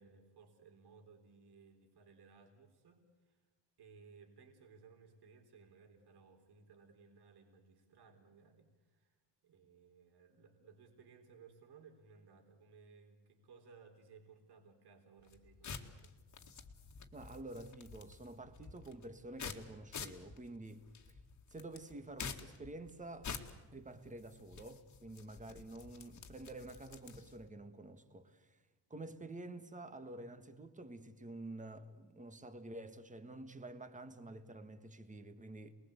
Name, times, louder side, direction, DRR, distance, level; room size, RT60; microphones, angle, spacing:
voice 1, 0.0-3.4 3.8-16.1, right 5 dB, 65° right, 4.2 m, -61 dB
sound 1, 15.2-27.5, left 6 dB, 40° left, 2.1 m, -50 dB
voice 2, 17.1-21.2 21.5-23.4 23.7-28.6 28.9-35.7, right 2 dB, 15° right, 1.7 m, -49 dB
28.5 x 21.0 x 8.3 m
cardioid pair, 155°, 43 cm